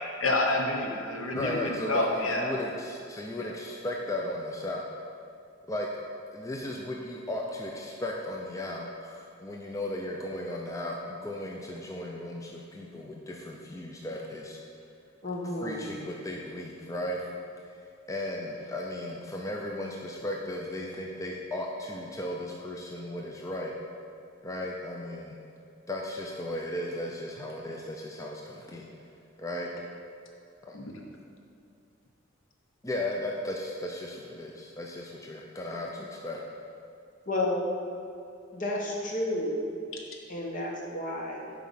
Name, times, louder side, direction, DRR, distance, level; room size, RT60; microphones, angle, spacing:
voice 1, 0.2-2.5 30.7-31.0, left 2 dB, 80° left, 1 dB, 1.0 m, -28 dB
voice 2, 1.3-4.8 5.7-5.9 6.3-14.6 15.6-17.3 18.1-23.7 24.4-25.4 25.9-28.9 29.4-29.7 30.6-30.8 32.8-36.4, left 1 dB, 15° left, -1 dB, 0.5 m, -35 dB
voice 3, 15.2-16.0 37.3-37.7 38.5-39.6 40.3-41.5, left 1 dB, 40° left, -2 dB, 1.2 m, -31 dB
7.4 x 4.8 x 5.6 m, 2.6 s
head